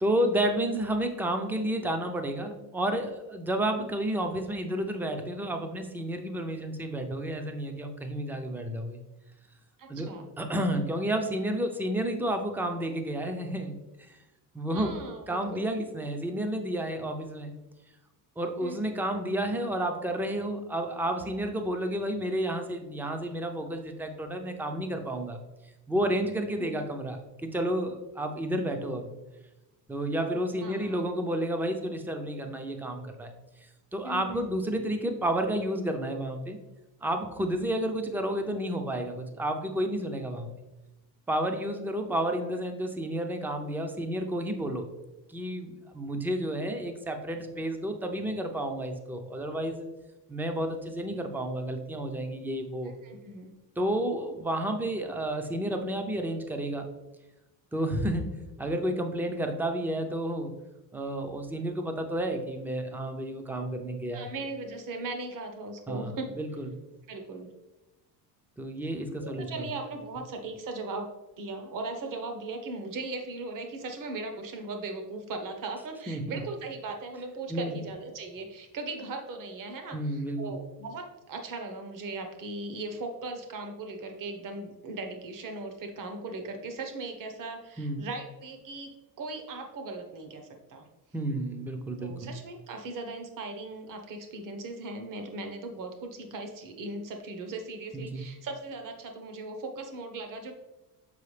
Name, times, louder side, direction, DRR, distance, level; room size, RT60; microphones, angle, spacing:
voice 1, 0.0-9.0 9.9-13.8 14.1-14.2 14.5-15.0 15.3-17.5 18.4-25.4 25.9-29.1 29.9-33.3 33.9-36.6 37.0-40.5 41.3-44.9 45.3-49.9 50.3-52.9 53.8-56.9 57.7-60.5 60.9-64.3 65.9-66.1 66.4-66.7 68.6-69.7 76.1-76.4 77.5-77.7 79.9-80.6 87.8-88.0 91.1-92.3 98.1-98.2, right 1 dB, 5° right, 5 dB, 0.5 m, -31 dB
voice 2, 9.8-10.3 14.7-15.7 18.6-19.0 26.6-26.8 30.6-31.0 34.0-34.6 52.8-53.5 64.1-66.3 67.1-67.5 69.2-71.1 71.4-90.9 92.0-100.5, right 3 dB, 45° right, 5 dB, 1.1 m, -38 dB
7.0 x 4.7 x 3.2 m, 1.0 s
cardioid pair, 130°, 43 cm